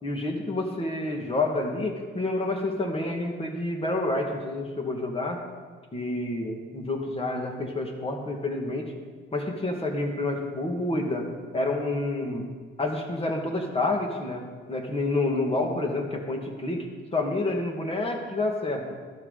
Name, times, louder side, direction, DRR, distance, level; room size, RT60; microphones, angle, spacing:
voice 1, 0.0-5.4 5.9-8.9 9.3-11.2 11.5-12.4 12.8-14.4 14.7-16.9 17.1-18.8, left 2 dB, 30° left, 2 dB, 2.2 m, -28 dB
12.0 x 12.0 x 4.1 m, 1.5 s
cardioid pair, 90°, 20 cm